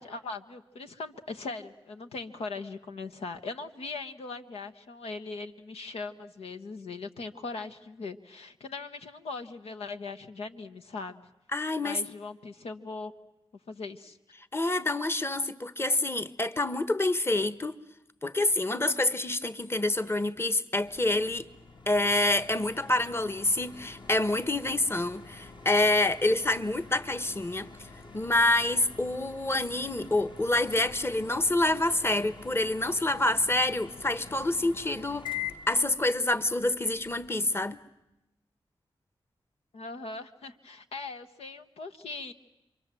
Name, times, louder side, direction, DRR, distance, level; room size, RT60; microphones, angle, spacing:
voice 1, 0.0-11.3 11.8-13.1 13.7-14.2 39.7-42.3, left 3 dB, 85° left, 1.1 m, -40 dB
voice 2, 11.5-12.0 14.5-17.8 18.2-21.5 21.9-27.7 28.1-35.3 35.7-37.8, left 2 dB, 25° left, 1.2 m, -27 dB
sound 1, 20.8-37.3, left 6 dB, 50° left, 1.8 m, -46 dB
29.0 x 24.0 x 7.6 m
cardioid pair, 40°, 10 cm